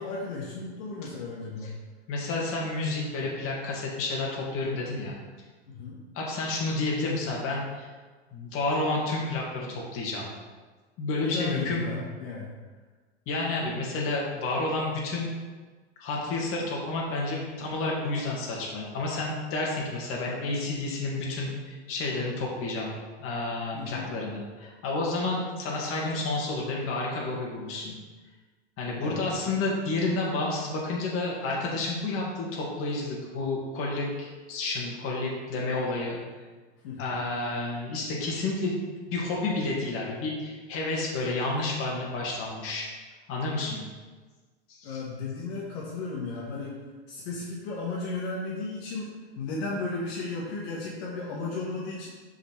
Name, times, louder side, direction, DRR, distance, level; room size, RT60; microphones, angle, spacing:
voice 1, 0.0-1.8 5.7-6.0 11.2-12.5 23.7-24.1 29.0-29.2 36.8-37.2 44.8-46.7 47.1-49.1 49.3-52.1, left 3 dB, 60° left, -5 dB, 1.7 m, -34 dB
voice 2, 2.1-5.2 6.1-7.9 8.3-10.3 11.0-12.0 13.3-15.4 16.0-22.9 23.2-28.0 28.8-36.2 37.0-38.8 39.1-42.9 43.3-43.8 44.8-45.0, left 2 dB, 40° left, -3 dB, 2.3 m, -30 dB
7.2 x 5.0 x 4.7 m, 1.4 s
hypercardioid pair, 125°, 34 cm